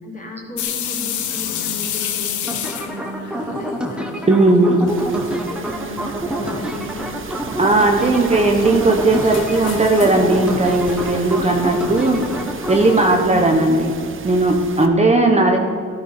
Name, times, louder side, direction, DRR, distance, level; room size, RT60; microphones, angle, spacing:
voice 1, 0.0-4.9 5.3-7.2, left 1 dB, 25° left, -1 dB, 4.1 m, -35 dB
sound 1, 0.6-4.4 4.6-5.3 5.7-5.8 6.4-6.8 7.8-13.2, left 9 dB, 75° left, 1.2 m, -31 dB
sound 2, 2.5-13.1, right 1 dB, 5° right, 1.7 m, -27 dB
voice 2, 4.3-4.9 7.6-12.3 12.7-13.9 14.2-15.6, right 2 dB, 20° right, 2 dB, 1.2 m, -16 dB
sound 3, 4.9-14.9, right 5 dB, 40° right, 1.1 m, -34 dB
13.0 x 11.5 x 6.0 m, 2.5 s
cardioid pair, 90°, 30 cm